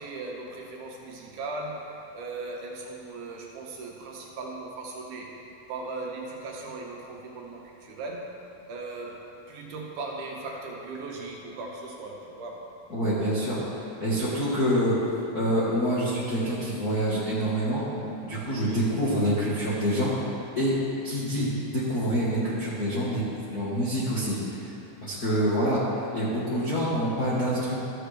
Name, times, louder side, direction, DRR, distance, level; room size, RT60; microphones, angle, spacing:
voice 1, 0.0-5.3 5.7-8.3 8.7-9.2 9.5-12.7 18.6-18.9 21.3-21.6, right 3 dB, 70° right, -1 dB, 2.2 m, -38 dB
voice 2, 12.9-13.6 14.0-14.9 15.3-17.8 18.2-20.1 20.6-20.7 21.0-24.7 25.0-27.8, equal, 50° left, -10 dB, 1.1 m, -26 dB
13.5 x 7.5 x 3.4 m, 2.9 s
omnidirectional pair, 4.0 m